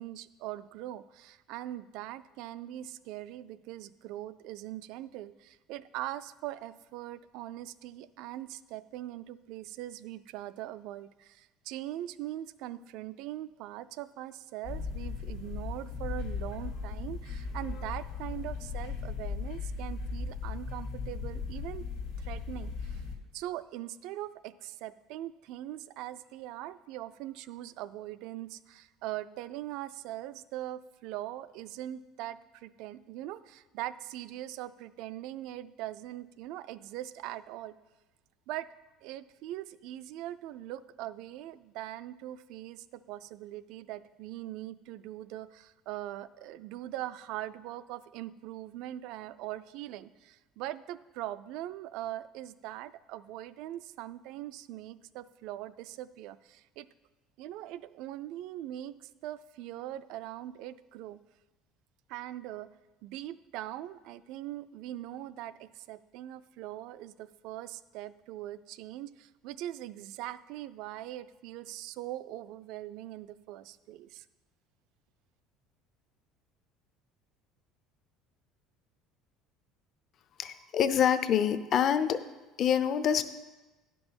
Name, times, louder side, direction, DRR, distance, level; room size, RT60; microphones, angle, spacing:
voice 1, 0.0-21.9 22.2-23.0 23.3-37.8 38.5-38.7 39.0-56.9 57.4-61.2 62.1-62.7 63.0-74.3, right 14 dB, 65° right, 15 dB, 0.3 m, -41 dB
sound 1, 14.6-23.2, left 5 dB, 75° left, 1.6 m, -37 dB
voice 2, 80.4-82.2 82.6-83.2, left 8 dB, 40° left, 12 dB, 0.5 m, -26 dB
10.0 x 5.4 x 6.1 m, 1.1 s
cardioid pair, 160°, 0 cm